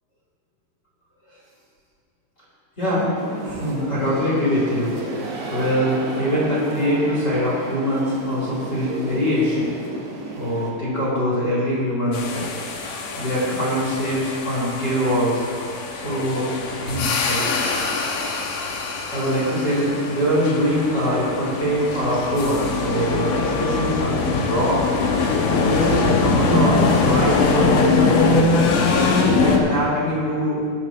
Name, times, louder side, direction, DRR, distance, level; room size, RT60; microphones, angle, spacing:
voice 1, 2.8-3.1 3.4-5.2 5.5-9.7 10.3-12.4 13.1-15.4 15.9-17.5 18.8-24.8 25.6-28.4 28.9-30.8, equal, 25° left, -8 dB, 4.3 m, -23 dB
sound 1, 3.1-10.7, right 2 dB, 90° right, 3.9 m, -33 dB
sound 2, 12.1-29.6, left 4 dB, 70° left, 2.6 m, -22 dB
21.0 x 9.7 x 3.2 m, 2.2 s
omnidirectional pair, 4.3 m